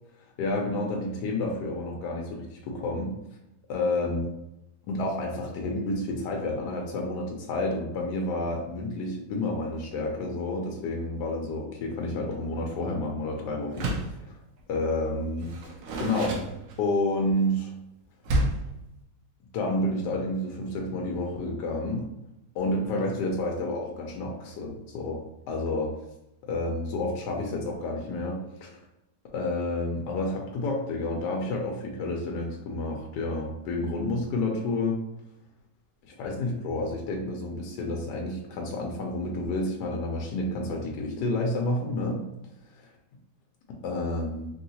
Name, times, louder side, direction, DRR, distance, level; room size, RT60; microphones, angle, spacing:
voice 1, 0.4-3.1 3.7-4.3 4.9-14.4 14.7-15.5 16.0-16.4 16.8-17.7 19.5-22.0 22.5-25.9 26.4-28.8 29.3-35.0 36.0-42.2 42.7-42.8 43.8-44.5, left 2 dB, 80° left, 0 dB, 1.2 m, -30 dB
Door, 13.7-14.2 15.4-17.1 18.2-18.7, right 1 dB, 65° right, 0.9 m, -30 dB
3.3 x 2.7 x 2.7 m, 0.86 s
omnidirectional pair, 1.9 m